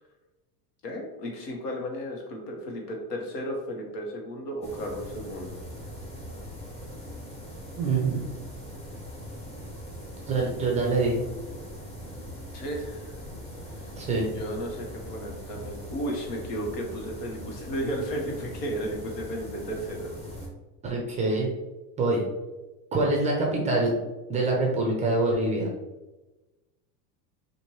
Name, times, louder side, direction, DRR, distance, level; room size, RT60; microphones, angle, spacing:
voice 1, 0.8-5.6 12.5-13.2 13.8-13.9 14.2-20.1, equal, 90° left, 0 dB, 1.3 m, -34 dB
sound 1, 4.6-20.5, equal, 15° left, 0.7 m, -41 dB
voice 2, 7.8-8.2 10.3-11.2 14.0-14.3 20.8-21.5 22.0-22.2 22.9-23.9 24.3-25.7, right 2 dB, 15° right, -1 dB, 0.3 m, -25 dB
4.4 x 2.6 x 3.1 m, 1.1 s
supercardioid pair, 135°, 47 cm